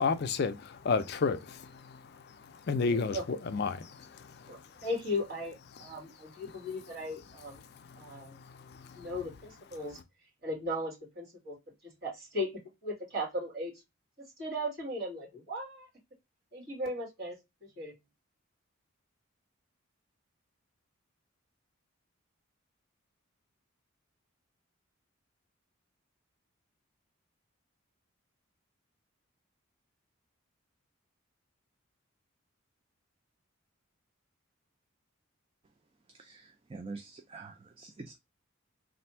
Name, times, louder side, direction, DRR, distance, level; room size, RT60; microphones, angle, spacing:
voice 1, 0.0-4.9 5.8-6.0 6.5-6.6 7.7-9.1, left 4 dB, 50° left, 0.4 m, -33 dB
voice 2, 2.9-3.2 4.5-7.6 8.0-8.4 8.9-10.0 10.4-11.6 11.8-12.5 12.8-13.7 14.2-15.9 16.5-17.4 17.8-17.9, left 1 dB, 50° right, 2.2 m, -37 dB
voice 3, 36.2-38.2, right 3 dB, 25° right, 0.3 m, -46 dB
3.3 x 2.6 x 4.3 m
head